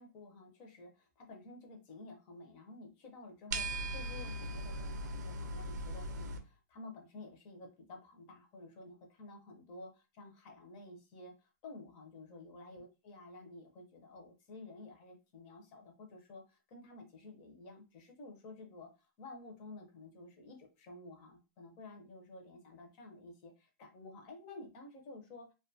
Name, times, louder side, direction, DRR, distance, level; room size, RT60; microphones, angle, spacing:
voice 1, 0.0-25.5, left 2 dB, 25° left, 3 dB, 0.5 m, -52 dB
sound 1, 3.5-6.4, right 1 dB, 70° right, 0.5 m, -39 dB
2.5 x 2.2 x 2.6 m, 0.29 s
hypercardioid pair, 175°, 10 cm